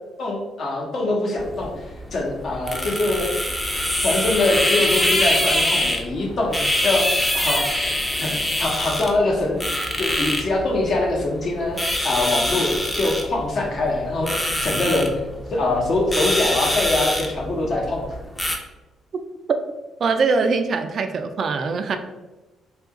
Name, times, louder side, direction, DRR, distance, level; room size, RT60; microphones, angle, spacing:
voice 1, 0.2-1.9 2.1-3.3 4.0-15.1 15.5-18.1, left 2 dB, 55° left, -1 dB, 0.9 m, -23 dB
sound 1, 1.4-18.6, left 1 dB, 10° left, 0.5 m, -25 dB
voice 2, 20.0-22.0, right 4 dB, 55° right, 7 dB, 0.3 m, -22 dB
2.8 x 2.4 x 3.6 m, 1.1 s
cardioid pair, 90°, 0 cm